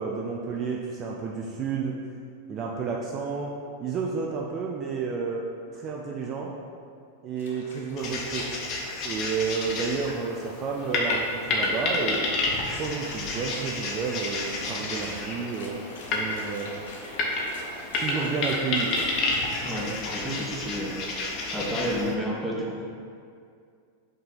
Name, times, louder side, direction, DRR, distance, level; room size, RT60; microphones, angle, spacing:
voice 1, 0.0-1.9 2.5-3.5 3.8-5.5 5.7-6.5 7.2-8.5 9.0-12.2 12.7-15.8 16.1-16.7 18.0-19.1, right 5 dB, 30° right, -2 dB, 0.5 m, -31 dB
sound 1, 7.4-8.8 9.1-9.2 10.3-20.4, left 2 dB, 60° left, 1.0 m, -46 dB
sound 2, 8.0-22.1, left 2 dB, 35° left, 1.0 m, -30 dB
voice 2, 19.6-21.0 21.5-22.8, equal, ahead, -5 dB, 1.1 m, -30 dB
5.6 x 3.3 x 5.6 m, 2.3 s
figure-of-eight pair, 90°, 0 cm